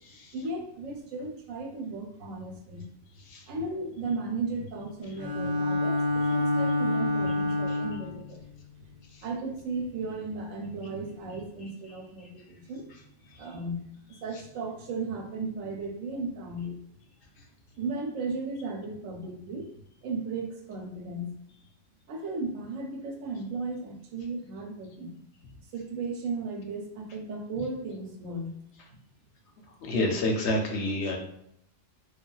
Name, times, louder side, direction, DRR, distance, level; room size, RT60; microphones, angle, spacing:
voice 1, 0.3-2.8 3.5-8.4 9.2-12.8 13.4-13.8 14.2-16.7 17.8-19.7 20.0-21.2 22.1-25.1 25.7-28.6, right 3 dB, 85° right, 2 dB, 1.1 m, -35 dB
Bowed string instrument, 5.2-8.2, left 2 dB, 35° right, 0.4 m, -27 dB
voice 2, 29.9-31.2, left 1 dB, 65° left, 2 dB, 0.9 m, -27 dB
3.2 x 2.3 x 2.3 m, 0.73 s
omnidirectional pair, 1.3 m